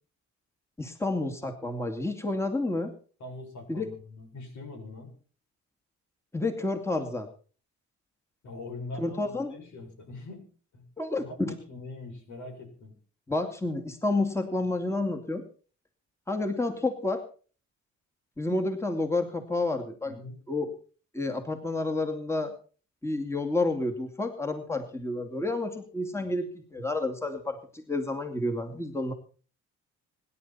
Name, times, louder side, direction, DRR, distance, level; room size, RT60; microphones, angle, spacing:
voice 1, 0.8-2.9 3.7-3.9 6.3-7.3 9.0-9.5 11.0-11.5 13.3-15.5 16.3-17.2 18.4-20.2 20.5-20.7 21.1-22.5 23.0-29.1, left 2 dB, 10° left, 5 dB, 2.6 m, -30 dB
voice 2, 3.2-5.1 8.4-10.5 10.7-10.8 11.2-12.9 20.1-20.4, left 2 dB, 70° left, 4 dB, 6.9 m, -42 dB
25.5 x 11.0 x 4.4 m, 0.40 s
cardioid pair, 90°, 30 cm